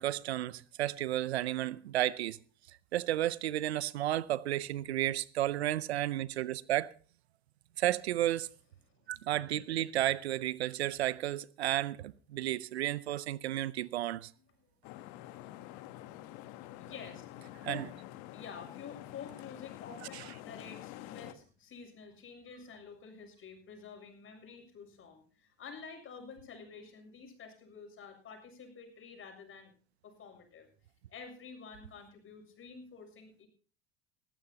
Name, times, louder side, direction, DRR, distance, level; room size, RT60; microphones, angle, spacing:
voice 1, 0.0-2.4 2.9-6.9 7.8-8.5 9.1-14.3 17.6-17.9 20.1-20.2, right 13 dB, 90° right, 0.6 m, -32 dB
sound 1, 14.8-21.3, left 14 dB, 65° left, 1.2 m, -48 dB
voice 2, 16.8-17.9 18.3-29.7 30.0-30.7 31.1-33.5, left 5 dB, 40° left, 7.0 m, -49 dB
19.5 x 16.0 x 2.9 m
hypercardioid pair, 80°, 31 cm